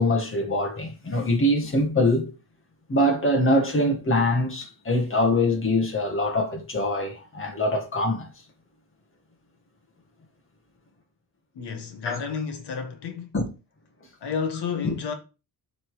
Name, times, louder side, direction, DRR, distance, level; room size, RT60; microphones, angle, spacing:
voice 1, 0.0-2.3 2.9-8.3 12.1-12.2 13.3-13.4 14.8-14.9, left 1 dB, 30° left, 2.0 m, -23 dB
voice 2, 11.5-13.3 14.2-15.1, left 6 dB, 80° left, 1.7 m, -31 dB
7.6 x 4.3 x 5.0 m
wide cardioid pair, 145°, 40 cm